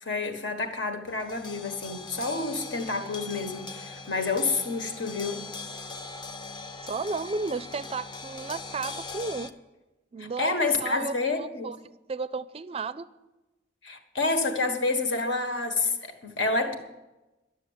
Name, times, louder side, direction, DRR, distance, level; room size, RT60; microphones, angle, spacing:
voice 1, 0.0-5.5 10.2-11.7 13.8-16.7, left 3 dB, 75° left, 1.5 m, -29 dB
sound 1, 1.0-9.5, left 3 dB, 25° left, 0.6 m, -41 dB
voice 2, 6.8-9.5 10.1-11.8 12.1-13.1, right 4 dB, 30° right, 0.4 m, -33 dB
11.5 x 6.9 x 9.5 m
head